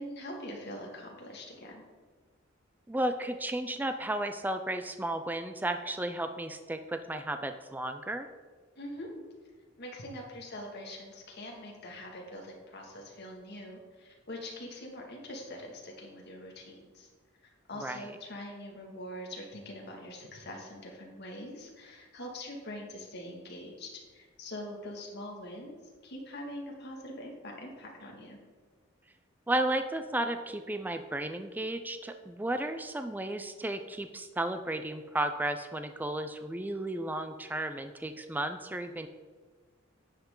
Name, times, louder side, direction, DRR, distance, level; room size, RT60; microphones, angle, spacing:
voice 1, 0.0-1.8 8.8-9.1 9.8-17.1 17.4-28.4, left 1 dB, 55° left, 0 dB, 2.1 m, -43 dB
voice 2, 2.9-8.3 17.8-18.0 29.5-39.1, right 1 dB, 10° right, 8 dB, 0.4 m, -33 dB
10.0 x 7.9 x 3.8 m, 1.4 s
head